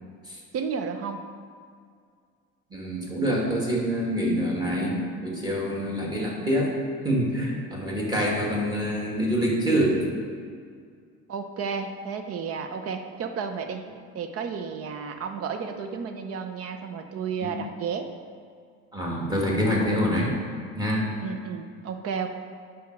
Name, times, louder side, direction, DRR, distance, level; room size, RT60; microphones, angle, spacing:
voice 1, 0.5-1.2 11.3-13.8 14.1-18.1 21.2-22.3, right 6 dB, 50° right, 6 dB, 0.8 m, -32 dB
voice 2, 2.7-6.7 7.0-10.0 17.4-17.5 18.9-20.4 20.7-21.1, equal, 15° right, -3 dB, 2.1 m, -26 dB
9.3 x 6.4 x 4.6 m, 2.1 s
cardioid pair, 130°, 31 cm